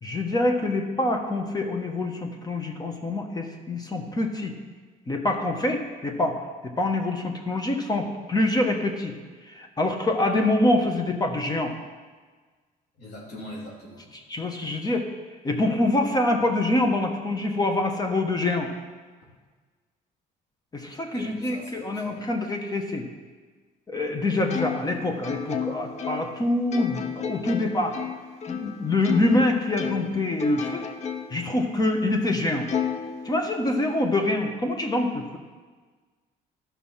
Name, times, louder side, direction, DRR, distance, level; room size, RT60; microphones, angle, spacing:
voice 1, 0.0-4.5 5.1-9.1 9.5-11.7 14.1-15.1 15.4-18.7 20.7-23.1 23.9-28.0 28.5-30.9 31.3-32.7 33.2-35.4, left 2 dB, 25° left, 3 dB, 1.2 m, -25 dB
voice 2, 13.0-14.1 21.1-22.2, left 1 dB, 80° left, -4 dB, 3.5 m, -41 dB
Plucked string instrument, 24.5-29.4 29.8-31.5 31.9-32.0 32.7-33.8, left 8 dB, 40° left, 0.8 m, -32 dB
12.5 x 5.9 x 5.7 m, 1.4 s
cardioid pair, 110°, 17 cm